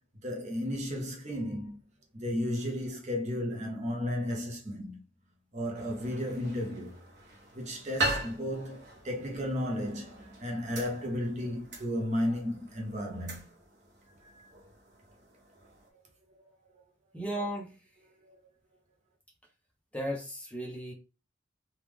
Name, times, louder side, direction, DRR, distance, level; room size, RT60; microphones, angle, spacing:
voice 1, 0.2-1.8 2.1-5.0 5.5-7.0 7.5-13.5 14.3-14.5 16.3-16.4 18.2-18.4, left 1 dB, 35° right, 0.8 m, -34 dB
sound 1, 5.7-15.9, right 2 dB, 60° right, 1.0 m, -40 dB
voice 2, 17.1-17.8 19.9-20.9, equal, 5° left, 0.7 m, -35 dB
3.1 x 2.4 x 3.5 m
head